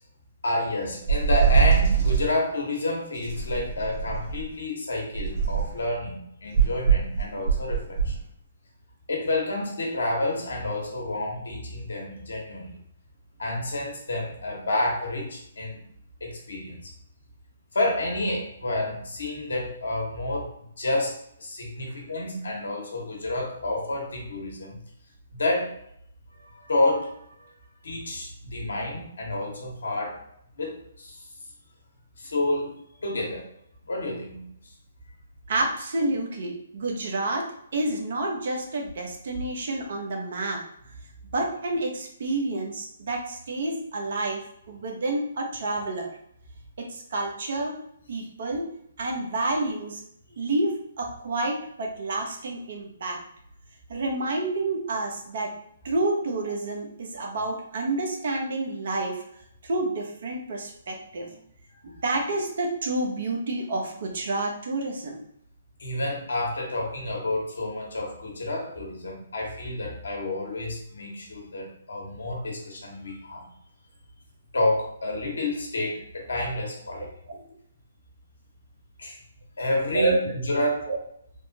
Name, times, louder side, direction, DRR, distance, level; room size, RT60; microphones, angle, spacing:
voice 1, 0.4-8.1 9.1-12.7 13.4-15.8 16.2-16.8 17.7-20.5 20.8-24.8 25.3-25.7 26.4-27.1 27.8-30.2 30.6-31.2 32.2-32.7 33.0-33.5 33.9-34.6 61.3-61.4 61.8-61.9 65.8-73.4 74.5-77.1 79.0-79.2 79.6-80.9, left 2 dB, 75° left, -1 dB, 1.0 m, -29 dB
sound 1, 1.1-2.3 3.2-4.5 5.1-5.8 6.5-8.2, right 6 dB, 35° right, 1.3 m, -22 dB
voice 2, 35.5-40.6 41.3-46.1 46.8-47.8 48.1-50.0 50.4-53.2 53.9-55.5 55.8-59.2 59.6-61.3 61.8-65.2 77.3-77.4 79.9-80.2 80.9-81.0, right 2 dB, 60° right, 1 dB, 0.8 m, -29 dB
3.5 x 2.1 x 2.8 m, 0.70 s
figure-of-eight pair, 135°, 0 cm